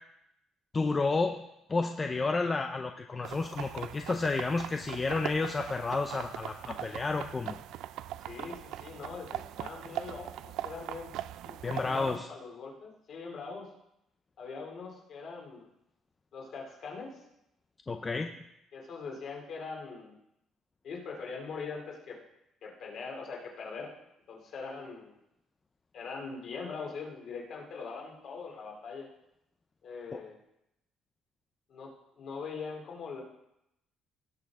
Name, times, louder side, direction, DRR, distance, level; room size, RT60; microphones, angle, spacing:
voice 1, 0.7-1.4 1.7-7.6 11.6-12.3 17.9-18.3 30.1-30.2, left 3 dB, 20° left, 5 dB, 0.4 m, -31 dB
sound 1, 3.2-12.2, right 12 dB, 65° right, 0.3 m, -41 dB
voice 2, 8.2-11.1 11.4-13.7 14.4-15.7 16.3-17.2 18.7-20.2 20.8-22.2 22.6-23.9 24.3-25.2 25.9-29.1 29.8-30.4 31.7-33.2, left 4 dB, 45° left, 0 dB, 2.5 m, -42 dB
17.5 x 6.7 x 3.5 m, 0.83 s
cardioid pair, 175°, 0 cm